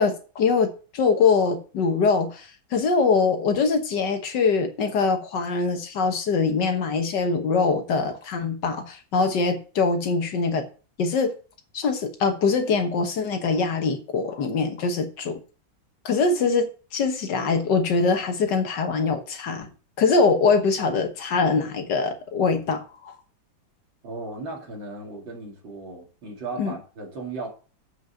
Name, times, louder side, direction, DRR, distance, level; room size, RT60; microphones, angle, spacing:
voice 1, 0.0-10.6 11.0-11.3 11.7-15.4 16.1-16.7 16.9-19.7 20.0-23.1 26.6-26.7, left 4 dB, 65° left, 1.7 m, -23 dB
voice 2, 24.0-27.5, right 3 dB, 70° right, 3.3 m, -36 dB
7.6 x 5.5 x 5.6 m
omnidirectional pair, 2.1 m